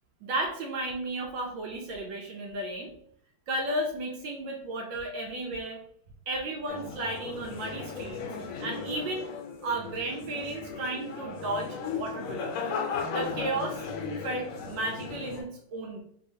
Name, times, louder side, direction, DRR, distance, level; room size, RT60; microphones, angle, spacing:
voice 1, 0.2-2.9 3.5-5.8 6.3-8.2 8.6-9.3 9.6-12.5 13.1-13.8 14.2-16.0, right 2 dB, 75° right, 1 dB, 1.2 m, -33 dB
sound 1, 6.7-15.4, left 5 dB, 80° left, 1.4 m, -36 dB
3.4 x 2.9 x 2.6 m, 0.67 s
omnidirectional pair, 2.4 m